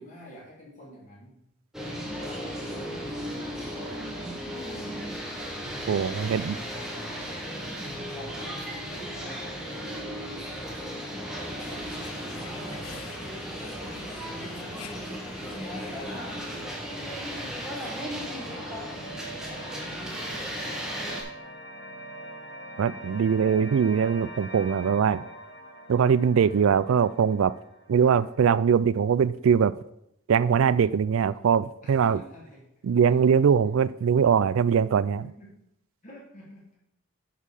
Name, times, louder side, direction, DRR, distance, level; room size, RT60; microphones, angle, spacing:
voice 1, 0.0-1.4 1.9-4.1 6.1-6.9 8.1-9.4 9.7-11.9 12.7-13.2 13.8-14.8 15.2-19.2 19.4-21.0 27.9-28.2 31.8-32.6 35.2-35.5 36.0-36.6, equal, 35° left, -5 dB, 2.6 m, -49 dB
sound 1, 1.7-21.2, equal, 5° right, 1.2 m, -35 dB
voice 2, 5.9-6.6 22.8-25.2 25.9-27.5 27.9-29.7 30.3-32.2 32.8-35.3, right 7 dB, 70° right, 17 dB, 0.3 m, -22 dB
sound 2, 11.6-16.7, left 8 dB, 90° left, 0.7 m, -48 dB
sound 3, 17.4-28.4, right 1 dB, 50° left, 1.6 m, -44 dB
8.3 x 5.6 x 4.8 m, 0.78 s
head